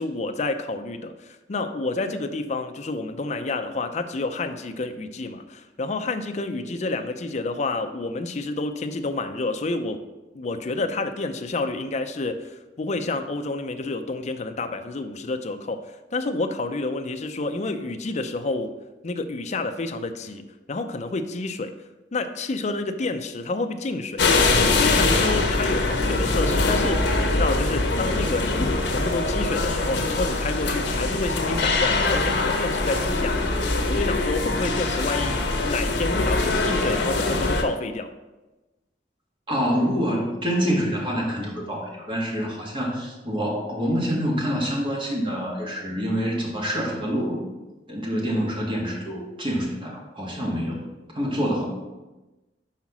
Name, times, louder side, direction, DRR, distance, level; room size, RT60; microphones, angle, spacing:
voice 1, 0.0-10.0 10.3-18.7 19.0-21.7 22.1-24.2 24.6-33.4 33.9-38.1, left 3 dB, 40° left, 7 dB, 0.5 m, -29 dB
sound 1, 24.2-37.6, left 2 dB, 80° left, 0.9 m, -23 dB
voice 2, 39.5-47.4 47.9-50.9 51.1-51.7, equal, 30° right, -2 dB, 1.7 m, -26 dB
5.7 x 4.8 x 5.9 m, 1.1 s
head